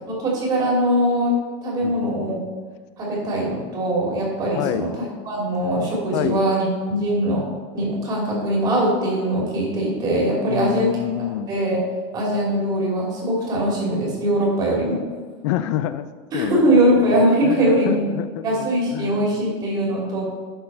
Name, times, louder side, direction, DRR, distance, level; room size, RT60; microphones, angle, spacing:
voice 1, 0.1-1.4 1.6-2.4 3.0-4.9 5.2-6.6 6.9-7.4 7.7-10.9 11.5-11.8 12.1-15.0 16.3-18.1 18.4-20.2, right 1 dB, 25° right, -3 dB, 2.8 m, -21 dB
voice 2, 1.8-2.5 4.5-4.9 6.1-6.4 10.5-11.5 15.4-16.1 16.3-19.3, left 12 dB, 65° left, 12 dB, 0.5 m, -28 dB
11.5 x 4.5 x 5.5 m, 1.4 s
supercardioid pair, 175°, 16 cm